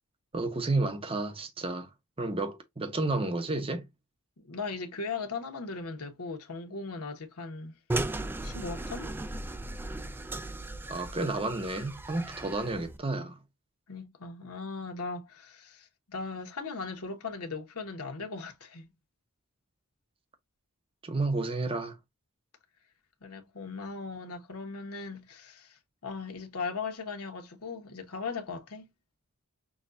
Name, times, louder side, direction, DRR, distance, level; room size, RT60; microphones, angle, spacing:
voice 1, 0.3-1.9 2.2-3.9 10.9-13.4 21.0-22.0, right 2 dB, 25° right, 0.8 m, -31 dB
voice 2, 4.4-7.7 8.4-9.2 12.7-12.8 13.9-18.9 23.2-28.9, left 4 dB, 85° left, 1.2 m, -38 dB
sound 1, 7.9-13.0, right 2 dB, 10° right, 0.3 m, -36 dB
6.1 x 2.3 x 2.5 m
head